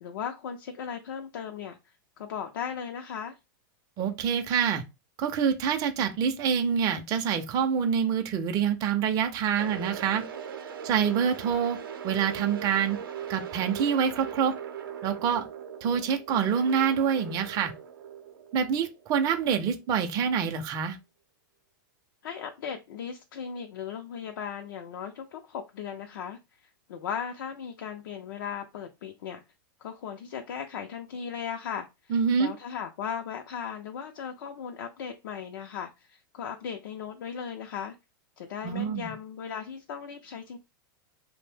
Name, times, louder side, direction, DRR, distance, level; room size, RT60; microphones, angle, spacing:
voice 1, 0.0-3.4 22.2-29.4 29.8-38.0 38.4-40.6, left 7 dB, 75° left, 0.4 m, -37 dB
voice 2, 4.0-4.8 5.2-10.2 10.8-11.8 12.0-13.0 13.3-14.5 15.0-15.5 15.8-17.7 18.5-21.0 32.1-32.5 38.6-39.1, right 7 dB, 35° right, 0.4 m, -26 dB
sound 1, 9.6-19.6, right 8 dB, 90° right, 0.5 m, -40 dB
2.6 x 2.0 x 3.3 m
hypercardioid pair, 125°, 11 cm